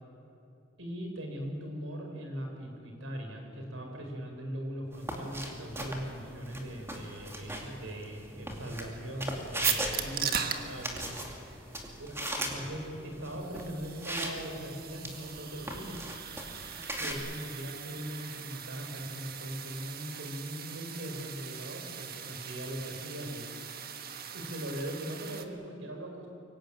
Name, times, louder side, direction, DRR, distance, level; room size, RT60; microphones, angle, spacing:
voice 1, 0.8-11.2 12.0-16.0 17.0-23.4 24.3-26.3, equal, 75° right, 3 dB, 4.9 m, -40 dB
sound 1, 4.9-17.1, right 1 dB, 15° right, 2.6 m, -39 dB
sound 2, 9.6-25.4, right 8 dB, 50° right, 1.4 m, -40 dB
24.0 x 18.0 x 8.9 m, 2.6 s
head